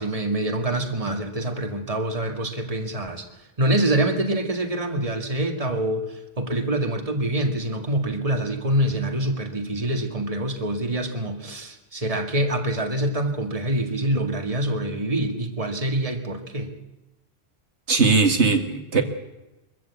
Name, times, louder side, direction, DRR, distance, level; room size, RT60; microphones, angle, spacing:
voice 1, 0.0-3.3 3.6-16.7, right 1 dB, 30° right, 4 dB, 2.2 m, -25 dB
voice 2, 17.9-19.0, right 4 dB, 90° right, 5 dB, 2.2 m, -19 dB
23.5 x 14.5 x 8.3 m, 1.0 s
omnidirectional pair, 1.1 m